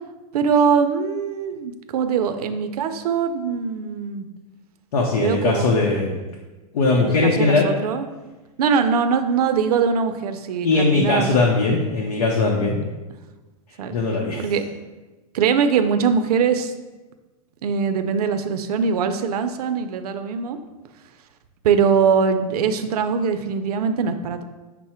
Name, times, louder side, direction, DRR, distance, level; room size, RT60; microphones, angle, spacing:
voice 1, 0.3-4.3 5.1-5.7 7.0-8.1 8.6-11.3 13.8-14.0 14.4-14.6 15.3-16.7 17.6-20.6 21.6-24.4, right 6 dB, 85° right, 8 dB, 0.5 m, -22 dB
voice 2, 4.9-6.2 6.7-7.7 10.6-12.8 13.9-14.4, left 3 dB, 80° left, -1 dB, 0.7 m, -20 dB
5.6 x 2.0 x 4.2 m, 1.2 s
hypercardioid pair, 120°, 19 cm